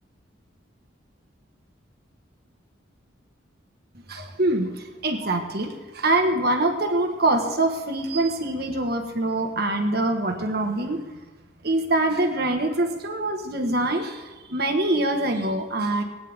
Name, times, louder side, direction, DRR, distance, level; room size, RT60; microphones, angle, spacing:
voice 1, 4.1-11.2 11.6-16.0, right 2 dB, 55° right, 5 dB, 1.5 m, -24 dB
20.5 x 9.9 x 3.6 m, 1.2 s
head